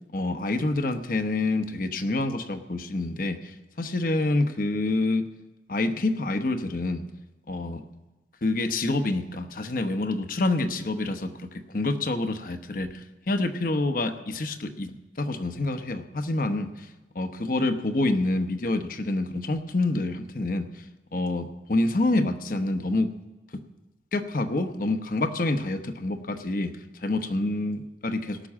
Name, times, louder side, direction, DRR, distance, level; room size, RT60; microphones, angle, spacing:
voice 1, 0.1-5.3 5.7-7.0 7.5-7.8 8.4-16.9 17.1-20.8 21.1-23.1 24.1-28.5, left 2 dB, 50° left, 8 dB, 0.9 m, -27 dB
18.0 x 6.1 x 7.3 m, 1.1 s
head